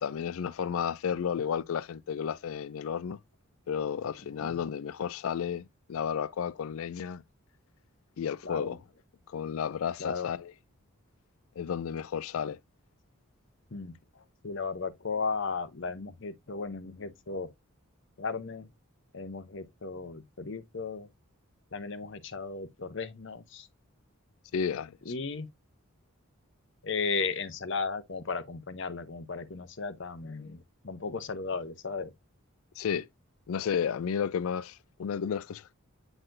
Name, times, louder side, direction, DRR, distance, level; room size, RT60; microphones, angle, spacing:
voice 1, 0.0-3.2 3.7-7.2 8.2-8.8 9.3-10.5 11.6-12.6 24.5-25.0 32.8-33.1 33.5-35.7, left 7 dB, 70° left, 0.4 m, -32 dB
voice 2, 8.4-8.8 10.0-10.3 13.7-13.9 14.4-17.5 18.2-18.7 19.1-21.1 21.7-23.7 25.1-25.5 26.8-32.1, left 4 dB, 55° left, 0.8 m, -35 dB
8.9 x 4.1 x 2.6 m
head